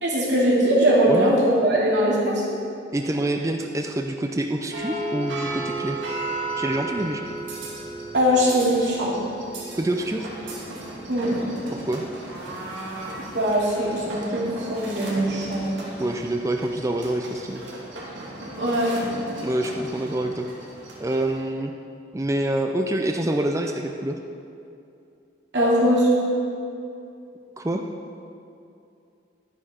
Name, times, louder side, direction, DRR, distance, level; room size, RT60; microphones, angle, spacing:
voice 1, 0.0-2.4 8.1-9.1 11.1-11.3 13.2-15.7 18.6-18.9 25.5-26.1, equal, 65° right, -5 dB, 2.8 m, -21 dB
voice 2, 2.9-6.0 6.6-7.2 9.7-10.3 11.7-12.0 16.0-17.6 19.4-20.5 21.0-21.7 22.1-24.2 27.6-27.8, right 1 dB, 15° right, 3 dB, 0.4 m, -26 dB
sound 1, 4.7-21.4, right 2 dB, 85° right, 2.6 m, -35 dB
12.5 x 9.5 x 4.3 m, 2.6 s
head